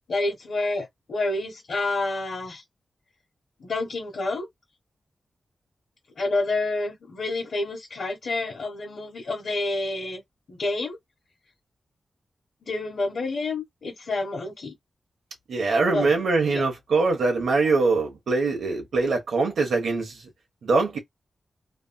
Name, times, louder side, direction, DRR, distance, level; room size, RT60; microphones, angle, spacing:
voice 1, 0.1-2.6 3.6-4.4 6.2-10.2 10.5-11.0 12.6-14.7 15.9-16.1 16.5-16.6, left 2 dB, 55° left, 1.4 m, -28 dB
voice 2, 15.5-20.2 20.6-21.0, right 3 dB, 75° right, 1.0 m, -23 dB
3.1 x 2.7 x 2.3 m
wide cardioid pair, 180°, 0 cm